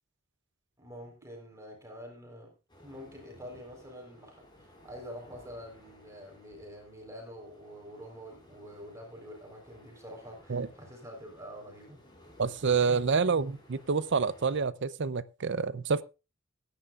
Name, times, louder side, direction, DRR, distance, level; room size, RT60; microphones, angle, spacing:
voice 1, 0.8-2.5 2.8-12.0, equal, 15° right, 4.2 m, -46 dB
sound 1, 2.7-14.6, left 1 dB, 20° left, 5.3 m, -57 dB
voice 2, 12.4-16.0, right 5 dB, 60° right, 0.6 m, -28 dB
21.0 x 10.0 x 2.5 m
head